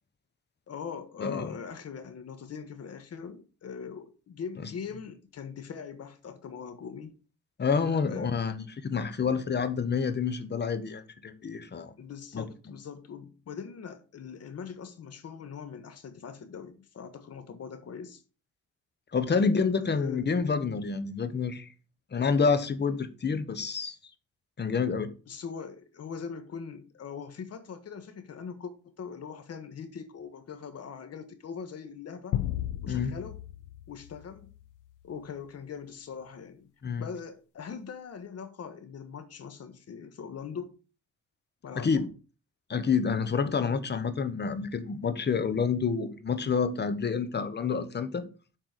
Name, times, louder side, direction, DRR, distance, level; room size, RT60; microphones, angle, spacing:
voice 1, 0.7-7.1 8.1-8.3 12.0-18.2 19.8-20.3 25.3-32.4 32.8-33.4 33.9-34.5 35.0-36.7 37.0-40.8 41.6-42.1, left 6 dB, 55° left, 1.5 m, -41 dB
voice 2, 1.2-1.5 4.6-4.7 7.6-11.9 12.3-12.4 19.1-21.7 22.1-24.0 24.6-25.1 32.9-33.2 36.8-37.0 41.8-42.1 42.7-48.2, left 5 dB, 35° left, 1.2 m, -28 dB
sound 1, 32.3-34.9, left 12 dB, 85° left, 0.6 m, -35 dB
7.7 x 4.5 x 6.7 m
cardioid pair, 90°, 30 cm